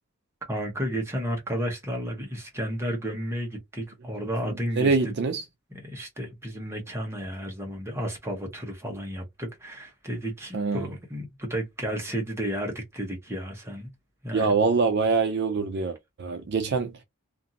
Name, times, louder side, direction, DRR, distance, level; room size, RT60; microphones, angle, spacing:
voice 1, 0.5-5.1 5.7-13.9 14.2-14.6, equal, 10° right, 0.8 m, -32 dB
voice 2, 4.5-5.4 10.5-10.9 14.3-16.9, right 4 dB, 50° right, 0.4 m, -25 dB
2.6 x 2.5 x 2.6 m
head